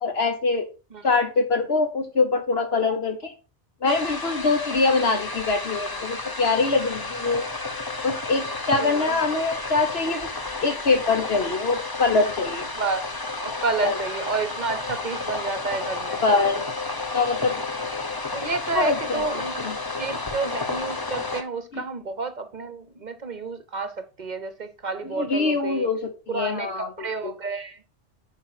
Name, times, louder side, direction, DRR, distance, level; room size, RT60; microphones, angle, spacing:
voice 1, 0.0-0.7 1.0-3.3 3.8-7.5 8.0-10.3 10.6-12.7 13.8-14.0 16.2-16.6 17.1-17.6 18.7-19.8 21.7-21.9 25.0-27.3, left 3 dB, 60° left, 1.4 m, -24 dB
sound 1, 3.9-21.4, left 3 dB, 20° left, 0.7 m, -31 dB
voice 2, 8.7-9.2 12.7-13.0 13.4-16.2 18.1-19.7 20.0-25.9 26.3-27.8, right 4 dB, 40° right, 0.9 m, -30 dB
10.0 x 4.9 x 4.2 m
omnidirectional pair, 1.2 m